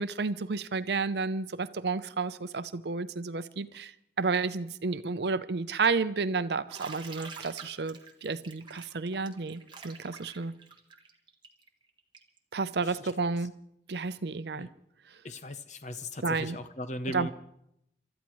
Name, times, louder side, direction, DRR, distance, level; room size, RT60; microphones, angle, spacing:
voice 1, 0.0-3.9 4.2-10.5 12.5-13.5 13.9-14.7 16.2-16.6 17.1-17.3, right 4 dB, 70° right, 0.6 m, -31 dB
Bathtub (filling or washing), 6.7-12.4, right 5 dB, 25° right, 1.2 m, -47 dB
voice 2, 15.2-17.3, left 1 dB, 40° left, 0.9 m, -38 dB
28.5 x 13.5 x 3.1 m
head